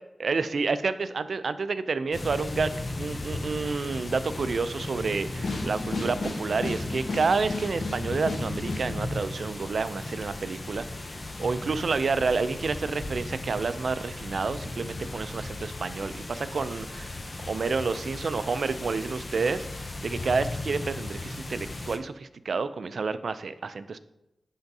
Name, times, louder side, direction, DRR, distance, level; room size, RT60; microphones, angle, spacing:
voice 1, 0.2-2.7 3.0-17.1 17.5-24.0, right 4 dB, 75° right, 13 dB, 0.3 m, -29 dB
sound 1, 2.1-22.0, left 2 dB, 45° left, 0.6 m, -36 dB
sound 2, 5.4-8.9, left 2 dB, 85° left, 1.0 m, -34 dB
10.0 x 3.5 x 2.7 m, 0.90 s
cardioid pair, 50°, 0 cm